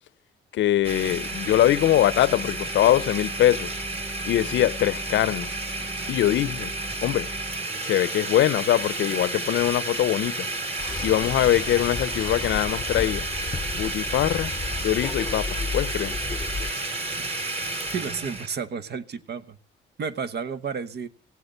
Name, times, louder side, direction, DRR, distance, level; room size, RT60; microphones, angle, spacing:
voice 1, 0.5-3.8 4.3-5.5 6.1-6.7 7.0-7.3 7.8-10.5 11.0-13.3 13.7-14.5 14.8-16.2, left 12 dB, 70° left, 0.7 m, -22 dB
Domestic sounds home sounds, 0.8-18.5, right 2 dB, 30° right, 3.4 m, -31 dB
sound 1, 10.8-16.7, left 4 dB, 20° left, 0.7 m, -33 dB
voice 2, 17.9-19.6 20.0-21.1, right 6 dB, 55° right, 1.1 m, -31 dB
17.0 x 8.1 x 6.6 m
cardioid pair, 90°, 20 cm